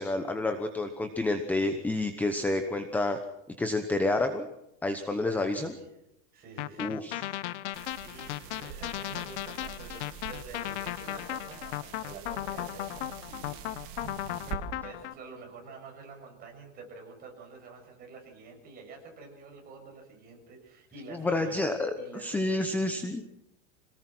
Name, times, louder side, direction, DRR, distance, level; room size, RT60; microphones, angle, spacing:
voice 1, 0.0-3.2 3.6-4.5 4.8-5.7 6.8-7.2 21.1-21.9 22.2-23.2, left 2 dB, 5° left, 7 dB, 0.9 m, -29 dB
voice 2, 5.2-5.9 6.3-23.0, right 4 dB, 25° right, 1 dB, 7.2 m, -48 dB
sound 1, 6.6-15.1, left 14 dB, 90° left, 1.1 m, -36 dB
sound 2, 7.7-14.6, right 10 dB, 50° right, 2.4 m, -45 dB
26.0 x 18.5 x 6.1 m, 0.82 s
supercardioid pair, 170°, 34 cm